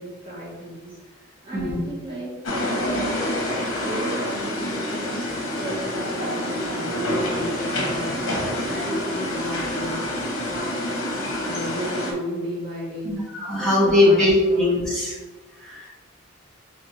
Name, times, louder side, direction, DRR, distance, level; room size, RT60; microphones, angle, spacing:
voice 1, 0.0-3.2 3.8-10.0 10.4-11.0 11.4-13.2 13.6-14.6, right 1 dB, 25° right, -9 dB, 1.0 m, -34 dB
sound 1, 2.4-12.1, left 1 dB, 70° left, 0.9 m, -27 dB
voice 2, 13.0-15.2 15.6-15.9, left 2 dB, 5° left, -9 dB, 1.2 m, -20 dB
4.2 x 3.2 x 3.0 m, 1.3 s
head